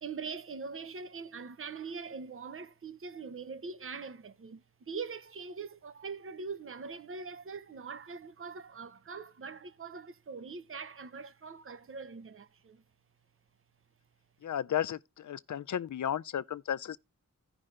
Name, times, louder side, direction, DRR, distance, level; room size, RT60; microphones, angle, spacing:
voice 1, 0.0-12.8, right 5 dB, 40° right, 0.8 m, -42 dB
voice 2, 14.4-17.0, left 9 dB, 65° left, 0.5 m, -34 dB
16.0 x 5.5 x 2.5 m
wide cardioid pair, 90°, 32 cm